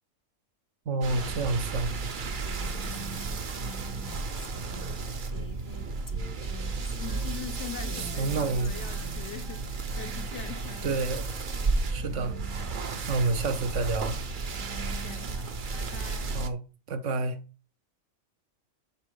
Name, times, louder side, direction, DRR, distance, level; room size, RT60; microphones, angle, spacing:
voice 1, 0.9-1.9 8.0-8.7 10.8-11.3 11.9-12.4 13.0-14.2 16.3-16.6 16.9-17.4, right 3 dB, 70° right, 1.2 m, -29 dB
sound 1, 1.0-16.5, right 4 dB, 45° right, 0.9 m, -33 dB
Female speech woman speaking, 2.3-9.4, left 1 dB, 20° left, 0.7 m, -47 dB
voice 2, 2.4-2.9 7.0-11.0 13.0-13.5 14.5-16.4, left 10 dB, 70° left, 1.0 m, -44 dB
Wind instrument woodwind instrument, 5.7-9.1 9.4-11.0 11.3-11.5 11.8-12.5 12.7-13.0, right 2 dB, 90° right, 2.0 m, -53 dB
10.0 x 3.7 x 5.2 m
omnidirectional pair, 1.3 m